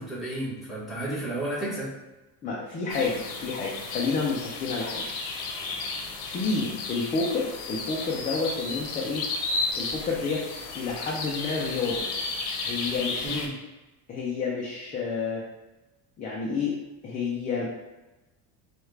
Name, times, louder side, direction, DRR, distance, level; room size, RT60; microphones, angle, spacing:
voice 1, 0.0-1.9 13.2-13.5, right 1 dB, ahead, -10 dB, 1.3 m, -32 dB
voice 2, 2.4-5.1 6.3-9.2 9.7-10.4 10.7-12.0 12.6-13.4 14.1-15.4 16.2-16.8 17.0-17.7, left 4 dB, 20° left, -4 dB, 0.3 m, -29 dB
sound 1, 2.9-13.5, left 3 dB, 65° left, 0.8 m, -33 dB
4.6 x 2.4 x 3.2 m, 1.1 s
cardioid pair, 160°, 42 cm